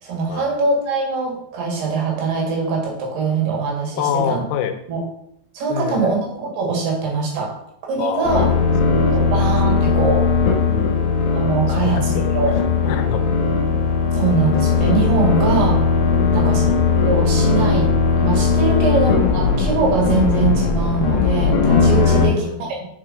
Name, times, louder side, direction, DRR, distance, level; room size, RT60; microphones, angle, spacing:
voice 1, 0.0-4.4 4.9-5.0 5.5-7.6 7.9-8.5 9.1-10.3 11.3-12.6 14.1-15.8 16.3-16.7 17.0-22.8, right 4 dB, 85° right, 0 dB, 3.7 m, -22 dB
voice 2, 4.0-4.8 5.7-6.2 8.0-9.5 9.8-9.9 10.7-11.0 11.7-12.3 12.8-13.4 16.1-16.7 18.7-19.0 22.0-22.7, left 8 dB, 85° left, 7 dB, 2.8 m, -27 dB
sound 1, 8.2-22.3, left 5 dB, 70° left, 2.0 m, -18 dB
6.8 x 4.4 x 5.0 m, 0.74 s
omnidirectional pair, 4.6 m